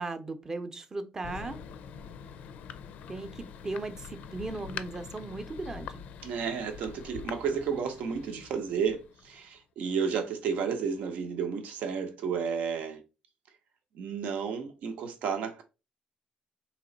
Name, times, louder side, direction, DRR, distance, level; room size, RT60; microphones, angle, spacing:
voice 1, 0.0-1.6 3.1-6.0, right 3 dB, 25° right, 0.6 m, -37 dB
Thunder, 1.2-9.6, left 8 dB, 90° left, 0.4 m, -44 dB
voice 2, 6.2-13.0 13.9-15.6, right 6 dB, 85° right, 0.8 m, -32 dB
4.1 x 3.0 x 3.9 m
cardioid pair, 135°, 2 cm